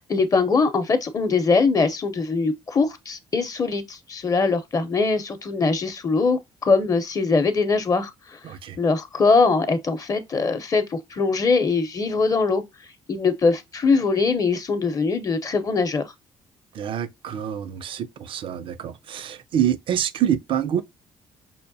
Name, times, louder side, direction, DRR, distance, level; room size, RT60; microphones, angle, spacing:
voice 1, 0.0-8.1 8.8-12.6 13.1-16.1, left 4 dB, 35° left, 0.6 m, -22 dB
voice 2, 8.4-8.8 16.8-20.8, right 10 dB, 60° right, 0.4 m, -26 dB
5.5 x 2.1 x 2.6 m
supercardioid pair, 75°, 10 cm